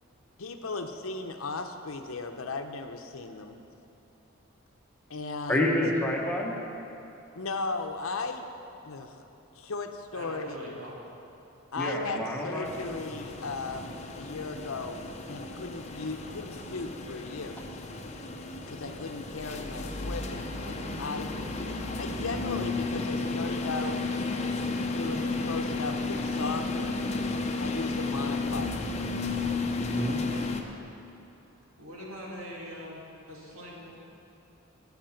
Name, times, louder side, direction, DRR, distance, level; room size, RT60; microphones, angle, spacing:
voice 1, 0.4-3.6 5.1-5.8 7.4-8.5 8.8-9.2 9.6-10.6 11.7-15.0 15.3-17.6 18.7-21.3 22.0-24.0 24.8-26.9 27.6-28.7, left 3 dB, 75° left, 6 dB, 0.8 m, -36 dB
voice 2, 5.5-6.6 11.8-12.7 29.8-30.2, left 1 dB, 10° left, -2 dB, 1.1 m, -28 dB
voice 3, 10.1-11.0 31.8-34.0, equal, 80° right, -4 dB, 2.5 m, -42 dB
sound 1, 12.6-30.6, left 3 dB, 30° left, 0.7 m, -33 dB
16.5 x 5.8 x 5.8 m, 2.9 s
head